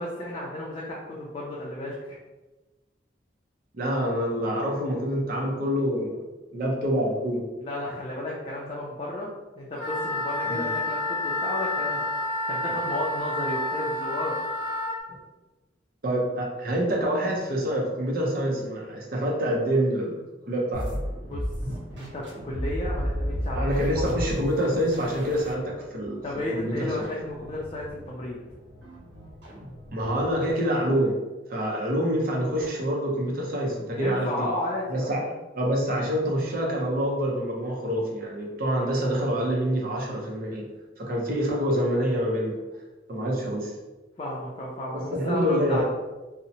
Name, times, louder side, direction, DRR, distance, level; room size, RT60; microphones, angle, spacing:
voice 1, 0.0-2.2 7.6-9.3 9.6-14.4 21.2-21.4 21.9-24.1 26.2-28.4 33.9-35.3 44.2-45.8, left 1 dB, 30° left, -5 dB, 0.4 m, -33 dB
voice 2, 3.7-6.2 6.5-7.5 10.5-10.7 16.0-20.2 20.5-21.0 23.5-26.2 26.5-27.1 29.9-31.2 31.5-34.5 34.9-35.3 35.5-40.6 41.0-42.6 43.1-43.7 44.9-45.8, equal, 55° right, -2 dB, 0.6 m, -26 dB
Wind instrument woodwind instrument, 9.7-15.0, left 1 dB, 5° left, 1.4 m, -29 dB
sound 1, 20.7-30.4, equal, 75° right, 0.9 m, -34 dB
2.7 x 2.0 x 2.7 m, 1.1 s
head